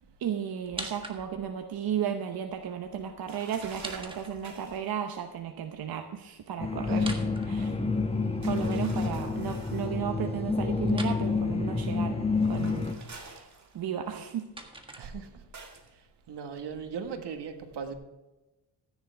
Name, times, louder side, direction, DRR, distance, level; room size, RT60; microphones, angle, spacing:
voice 1, 0.2-7.8 8.4-12.2 12.5-12.8 13.1-13.5 13.7-14.5, right 8 dB, 60° right, 5 dB, 0.9 m, -34 dB
sound 1, 0.6-1.6 3.6-4.8 6.9-8.2 10.9-11.2 13.9-15.6, right 2 dB, 10° right, 1.6 m, -43 dB
sound 2, 3.3-4.9 8.4-10.0 12.3-14.1 15.5-15.9, right 4 dB, 40° right, 2.0 m, -48 dB
sound 3, 6.6-12.9, left 4 dB, 15° left, 1.0 m, -29 dB
voice 2, 15.0-15.4 16.3-17.9, right 6 dB, 75° right, 6 dB, 1.6 m, -38 dB
14.5 x 9.8 x 3.4 m, 1.1 s
cardioid pair, 110°, 42 cm